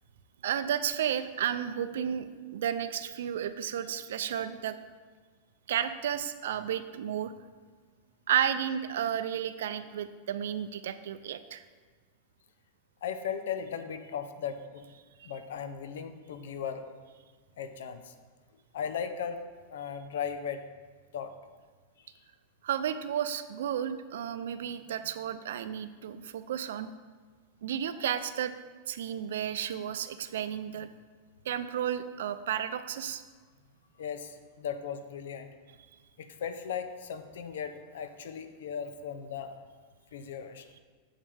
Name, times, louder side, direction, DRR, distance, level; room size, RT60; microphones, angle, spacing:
voice 1, 0.4-4.8 5.7-7.3 8.3-11.6 22.6-26.9 27.6-28.5 28.9-30.9 31.5-33.2, right 9 dB, 80° right, 12 dB, 0.5 m, -32 dB
voice 2, 13.0-14.9 15.2-16.8 17.6-18.1 18.7-19.4 19.7-20.6 21.1-21.3 34.0-35.5 36.2-39.6 40.1-40.6, left 7 dB, 85° left, 9 dB, 0.7 m, -37 dB
8.7 x 7.4 x 3.4 m, 1.5 s
supercardioid pair, 155°, 0 cm